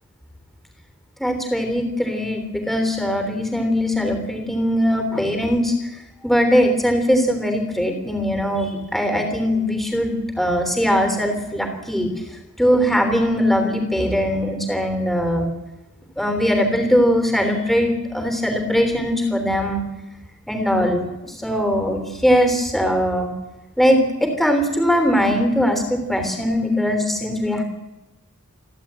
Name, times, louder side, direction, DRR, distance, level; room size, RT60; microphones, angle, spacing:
voice 1, 1.2-5.7 6.2-12.1 12.6-15.5 16.2-19.8 20.5-23.3 23.8-27.6, equal, ahead, 6 dB, 3.3 m, -20 dB
28.5 x 11.5 x 8.8 m, 0.99 s
head